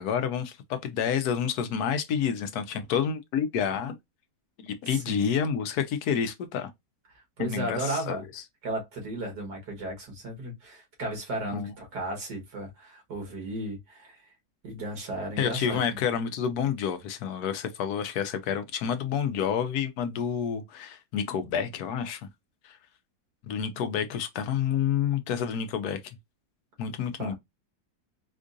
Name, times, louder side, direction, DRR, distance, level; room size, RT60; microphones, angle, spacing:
voice 1, 0.0-3.9 4.6-6.7 7.4-8.4 11.5-11.7 15.4-22.3 22.6-22.8 23.5-26.2 26.8-27.3, left 7 dB, 70° left, 1.1 m, -29 dB
voice 2, 4.9-5.3 7.4-8.2 8.6-14.2 14.6-15.8 27.2-27.4, right 1 dB, 75° right, 2.0 m, -35 dB
4.4 x 2.4 x 2.5 m
omnidirectional pair, 1.8 m